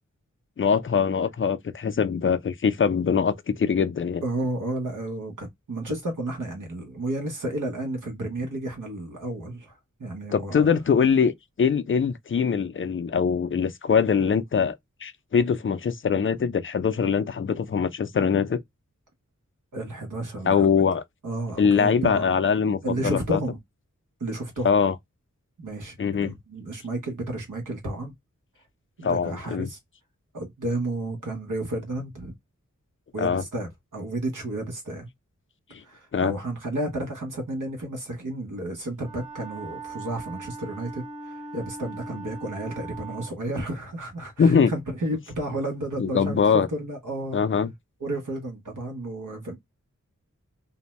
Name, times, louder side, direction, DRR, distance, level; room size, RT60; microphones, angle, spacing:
voice 1, 0.6-4.2 10.3-11.3 11.6-14.8 15.0-18.6 20.5-21.0 21.6-23.4 24.6-24.9 26.0-26.3 29.0-29.7 33.2-33.4 35.7-35.8 36.1-36.3 44.4-44.7 46.0-46.7 47.3-47.7, left 6 dB, 40° left, 0.4 m, -22 dB
voice 2, 4.2-10.7 19.7-20.7 21.2-22.3 22.8-23.6 24.2-24.7 25.6-28.1 29.0-29.8 30.3-32.3 33.1-35.1 35.8-47.4 48.0-49.6, right 1 dB, 80° right, 1.0 m, -32 dB
Wind instrument woodwind instrument, 39.0-43.4, right 3 dB, 25° right, 0.6 m, -40 dB
2.6 x 2.2 x 3.0 m
wide cardioid pair, 70°, 31 cm